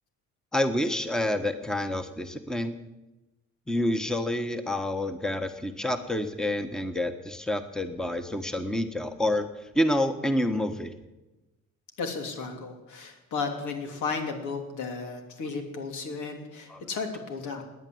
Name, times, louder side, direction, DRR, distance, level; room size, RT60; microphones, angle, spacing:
voice 1, 0.5-2.8 3.7-9.5 9.7-10.9 16.7-16.8, left 1 dB, ahead, 8 dB, 1.2 m, -28 dB
voice 2, 12.0-17.6, left 4 dB, 80° left, 4 dB, 3.0 m, -34 dB
18.5 x 10.0 x 7.9 m, 1.0 s
cardioid pair, 90°, 30 cm